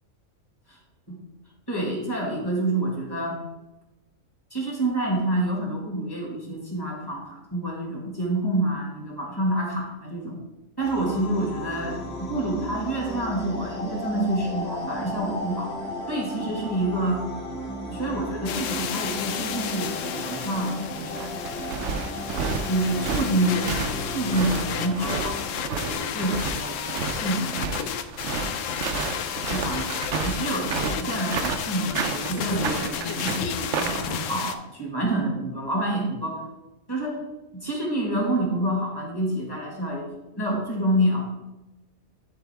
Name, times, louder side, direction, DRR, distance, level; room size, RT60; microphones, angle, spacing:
voice 1, 1.7-3.4 4.5-10.4 10.8-15.7 16.1-17.3 17.9-21.3 22.7-27.6 29.4-36.4 36.9-37.2 37.5-41.2, right 1 dB, 20° left, -2 dB, 1.8 m, -28 dB
sound 1, 10.8-25.5, left 1 dB, 55° left, 2.6 m, -35 dB
sound 2, 18.5-34.6, left 8 dB, 80° left, 1.0 m, -32 dB
sound 3, 20.9-34.1, right 6 dB, 70° right, 0.9 m, -31 dB
11.5 x 3.9 x 3.5 m, 1.0 s
omnidirectional pair, 1.3 m